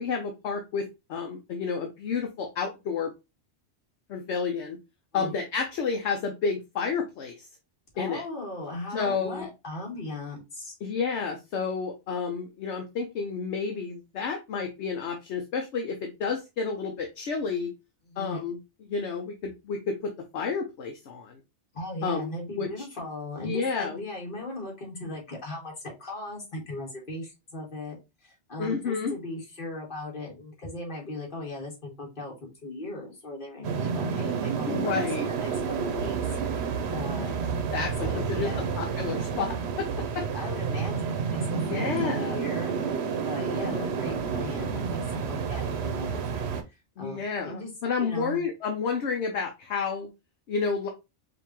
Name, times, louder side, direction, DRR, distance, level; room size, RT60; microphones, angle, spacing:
voice 1, 0.0-3.1 4.1-4.8 5.1-7.5 8.0-8.2 8.9-9.5 10.8-17.7 18.2-21.4 22.0-22.7 23.4-24.0 28.6-29.1 34.6-35.3 35.6-35.7 37.7-38.5 38.7-39.9 40.1-40.2 41.5-42.4 43.4-43.8 47.0-50.1 50.5-50.9, left 5 dB, 70° left, 4 dB, 1.0 m, -30 dB
voice 2, 7.9-10.8 18.1-18.4 21.7-27.9 28.2-35.1 35.4-36.2 36.4-37.4 38.0-38.7 40.3-46.5 47.0-47.7 48.0-48.5, left 2 dB, 45° left, -1 dB, 1.7 m, -38 dB
sound 1, 33.6-46.6, right 6 dB, 65° right, 0.9 m, -30 dB
5.0 x 2.6 x 2.9 m, 0.25 s
omnidirectional pair, 1.2 m